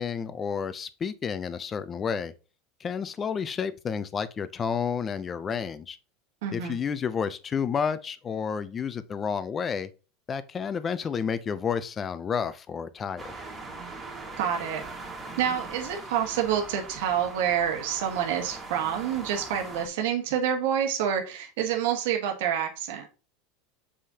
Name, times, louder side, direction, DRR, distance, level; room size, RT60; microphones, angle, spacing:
voice 1, 0.0-2.3 2.8-6.0 6.5-9.9 10.3-13.3, left 6 dB, 20° left, 0.5 m, -30 dB
voice 2, 6.4-6.8 14.4-14.8 15.4-23.1, right 9 dB, 75° right, 1.5 m, -28 dB
sound 1, 13.2-19.9, right 3 dB, 15° right, 1.7 m, -41 dB
7.5 x 5.0 x 2.8 m
supercardioid pair, 150°, 0 cm